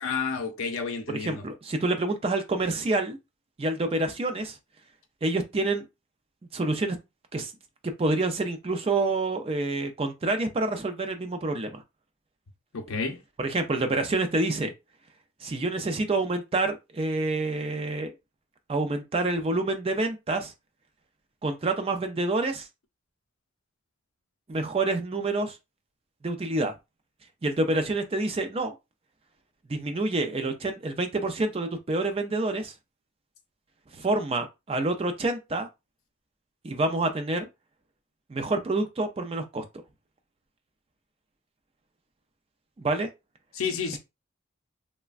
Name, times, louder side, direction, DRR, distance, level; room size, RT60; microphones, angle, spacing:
voice 1, 0.0-1.5 12.7-13.2 43.5-44.0, left 5 dB, 80° left, 0.6 m, -30 dB
voice 2, 1.2-3.2 3.6-4.6 5.2-5.9 6.5-7.0 7.3-7.5 7.8-11.8 13.4-14.7 15.4-18.1 18.7-20.5 21.4-22.7 24.5-25.6 26.2-26.7 27.4-28.7 29.7-32.7 33.9-35.7 36.6-37.5 38.3-39.6 42.8-43.1, right 2 dB, 25° right, 0.3 m, -27 dB
3.2 x 2.1 x 2.4 m
head